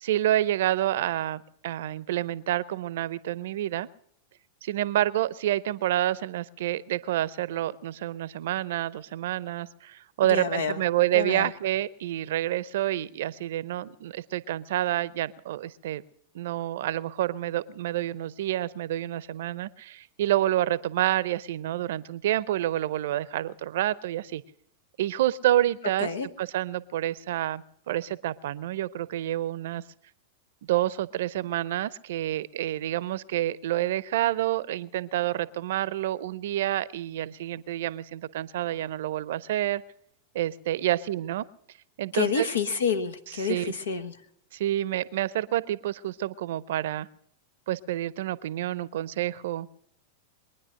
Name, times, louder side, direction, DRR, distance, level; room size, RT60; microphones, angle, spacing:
voice 1, 0.0-3.9 4.6-16.0 16.3-24.4 25.0-29.8 30.7-39.8 40.3-41.4 42.0-42.5 43.3-43.7 44.5-47.1 47.7-49.7, right 13 dB, 65° right, 19 dB, 0.6 m, -28 dB
voice 2, 10.3-10.8 11.1-11.5 26.0-26.3 42.1-44.1, left 6 dB, 80° left, 10 dB, 1.3 m, -28 dB
22.5 x 9.9 x 6.4 m, 0.67 s
hypercardioid pair, 100°, 0 cm